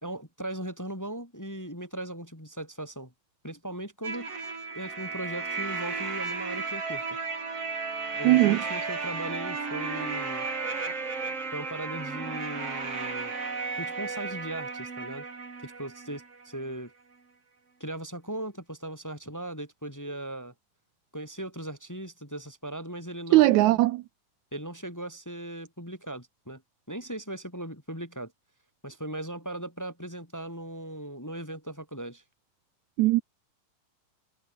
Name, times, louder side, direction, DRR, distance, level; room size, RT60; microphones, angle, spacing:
voice 1, 0.0-3.1 3.4-4.3 4.7-7.0 8.1-10.5 11.5-13.3 13.8-15.3 15.6-16.9 17.8-20.5 21.1-23.8 24.5-26.6 26.9-28.3 28.8-32.2, right 1 dB, 5° left, 1.7 m, -38 dB
sound 1, 4.0-16.7, right 4 dB, 45° right, 5.5 m, -34 dB
voice 2, 8.2-8.6 23.3-24.0 33.0-33.2, right 18 dB, 90° right, 1.6 m, -19 dB
omnidirectional pair, 4.0 m